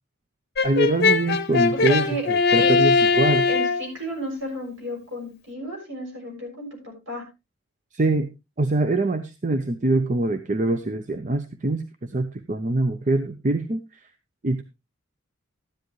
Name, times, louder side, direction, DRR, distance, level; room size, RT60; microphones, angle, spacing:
Brass instrument, 0.6-3.9, left 4 dB, 50° left, 0.8 m, -20 dB
voice 1, 0.6-3.5 7.9-8.3 8.6-13.8 14.4-14.6, right 2 dB, 35° right, 9 dB, 0.7 m, -24 dB
voice 2, 1.7-2.3 2.5-2.8 3.5-7.2, right 1 dB, 65° right, 0 dB, 6.6 m, -33 dB
13.0 x 10.5 x 3.1 m, 0.26 s
head